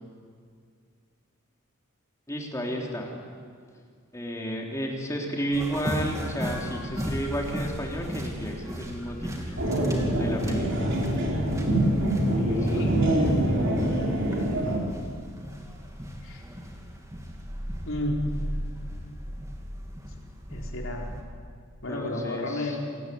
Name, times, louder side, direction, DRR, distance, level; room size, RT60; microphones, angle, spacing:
voice 1, 2.3-3.1 4.1-9.6 10.2-11.0 12.5-12.9 21.9-22.8, equal, 15° left, -1 dB, 3.6 m, -32 dB
sound 1, 5.5-21.2, equal, 15° right, 2.8 m, -37 dB
sound 2, 9.6-14.8, right 1 dB, 55° right, 4.9 m, -24 dB
voice 2, 12.0-13.0 16.2-16.4 17.8-18.3 20.5-21.1 21.8-22.8, left 1 dB, 60° left, -1 dB, 4.6 m, -32 dB
28.0 x 18.0 x 9.5 m, 2.1 s
head